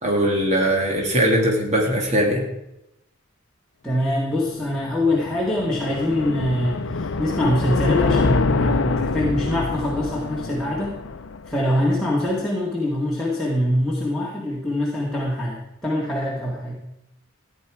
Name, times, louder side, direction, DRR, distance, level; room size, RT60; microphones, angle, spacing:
voice 1, 0.0-2.5, equal, 30° right, -1 dB, 2.4 m, -20 dB
voice 2, 3.8-11.0 11.5-16.8, left 1 dB, ahead, -6 dB, 1.9 m, -24 dB
sound 1, 4.5-11.8, left 4 dB, 65° left, 0.6 m, -26 dB
14.5 x 10.0 x 4.8 m, 0.88 s
head